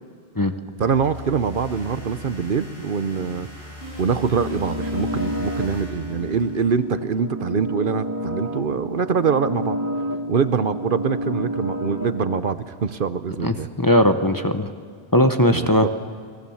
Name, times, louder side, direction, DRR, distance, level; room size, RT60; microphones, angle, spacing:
sound 1, 0.8-6.9, left 1 dB, 60° left, 6.8 m, -37 dB
voice 1, 0.8-3.5 4.0-9.8 10.3-13.7 15.5-15.9, right 6 dB, 55° right, 12 dB, 0.9 m, -24 dB
sound 2, 4.4-12.4, equal, 15° right, 1.6 m, -30 dB
voice 2, 13.4-14.7 15.1-15.9, left 1 dB, 20° left, 6 dB, 0.9 m, -18 dB
29.5 x 20.0 x 7.2 m, 2.1 s
omnidirectional pair, 1.1 m